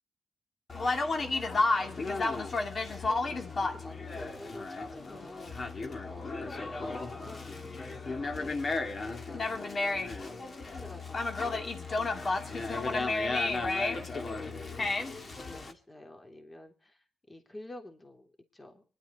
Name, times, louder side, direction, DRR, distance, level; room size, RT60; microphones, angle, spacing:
Conversation, 0.7-15.7, left 3 dB, 50° left, 2.1 m, -33 dB
voice 1, 1.2-8.8 9.1-13.4 13.8-18.8, left 1 dB, 30° left, 3 dB, 3.1 m, -51 dB
24.5 x 11.5 x 4.1 m, 0.42 s
supercardioid pair, 45°, 0 cm